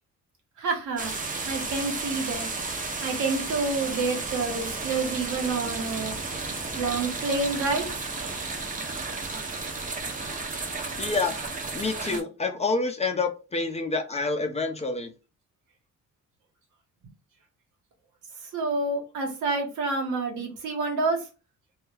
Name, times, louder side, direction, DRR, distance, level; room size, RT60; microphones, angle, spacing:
voice 1, 0.6-1.1 1.4-2.5 3.0-6.2 6.8-7.9 18.4-21.3, right 3 dB, 75° right, 1.1 m, -28 dB
sound 1, 1.0-12.2, right 3 dB, 25° right, 0.6 m, -33 dB
voice 2, 11.0-11.3 11.7-15.1, left 3 dB, 20° left, 0.5 m, -27 dB
2.3 x 2.1 x 3.2 m
cardioid pair, 90°, 30 cm